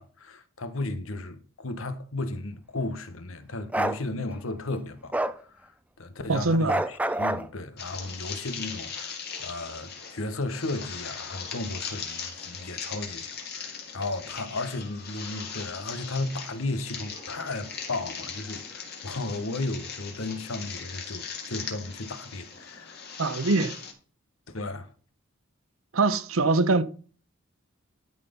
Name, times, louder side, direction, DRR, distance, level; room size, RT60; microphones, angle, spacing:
voice 1, 0.0-23.2 24.5-24.9, left 2 dB, 85° left, 1.2 m, -35 dB
Bark, 3.7-4.0 5.1-5.4 6.7-7.5, right 1 dB, 5° right, 0.4 m, -26 dB
voice 2, 6.3-6.7 23.2-23.7 25.9-26.8, right 3 dB, 85° right, 0.8 m, -23 dB
sound 1, 7.8-23.9, left 6 dB, 50° left, 2.3 m, -39 dB
12.5 x 4.2 x 5.2 m
head